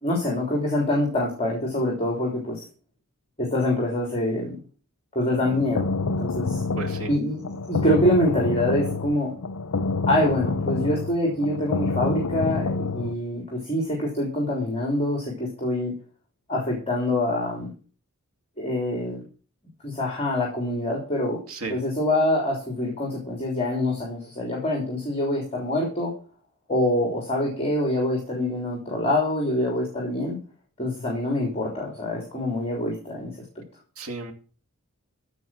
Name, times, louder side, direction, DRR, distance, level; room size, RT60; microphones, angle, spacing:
voice 1, 0.0-2.6 3.4-4.6 5.1-5.8 6.2-6.6 7.1-7.4 7.7-9.3 10.1-15.9 16.5-17.7 18.6-19.2 19.8-21.4 21.7-26.1 26.7-30.4 30.8-33.3, left 1 dB, 30° left, -1 dB, 3.3 m, -25 dB
sound 1, 5.3-13.1, left 3 dB, 85° left, 0.7 m, -28 dB
voice 2, 6.8-7.1 21.5-21.7 34.0-34.3, right 4 dB, 80° right, 5 dB, 2.8 m, -33 dB
15.0 x 5.5 x 7.4 m, 0.39 s
head